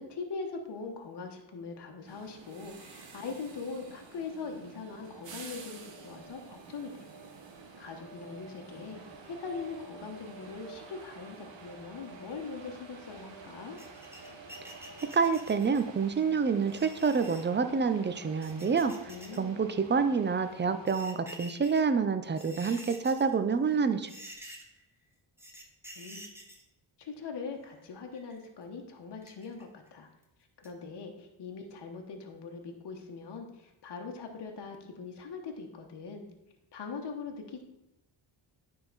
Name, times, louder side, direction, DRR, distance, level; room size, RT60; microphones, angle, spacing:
voice 1, 0.0-7.1 7.8-13.8 19.1-19.5 25.9-26.2 27.0-30.1 30.6-36.2 36.7-37.6, left 4 dB, 55° left, 3 dB, 1.2 m, -41 dB
sound 1, 2.1-20.9, right 4 dB, 65° right, 1.2 m, -50 dB
sound 2, 13.8-15.9 16.6-17.4 18.2-19.4 19.7-19.8 20.6-21.8 22.2-23.3 23.7-23.8 24.1-24.8 25.4-26.6 27.7-28.5 29.2-29.9 30.2-30.3 30.6-30.7, equal, 5° right, 1.3 m, -49 dB
voice 2, 15.0-24.1, right 5 dB, 25° right, 10 dB, 0.6 m, -28 dB
9.4 x 3.8 x 4.1 m, 0.89 s
cardioid pair, 70°, 48 cm